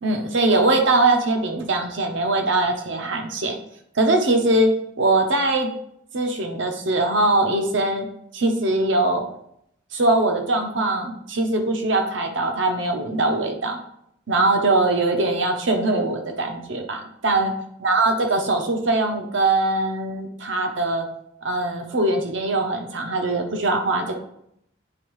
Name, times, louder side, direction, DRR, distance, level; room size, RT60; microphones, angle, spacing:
voice 1, 0.0-3.6 3.9-4.7 5.0-5.7 6.1-8.1 8.3-9.2 9.9-13.8 14.3-17.5 17.8-21.1 21.4-24.2, right 2 dB, 70° right, 4 dB, 0.9 m, -21 dB
9.8 x 3.5 x 3.2 m, 0.75 s
head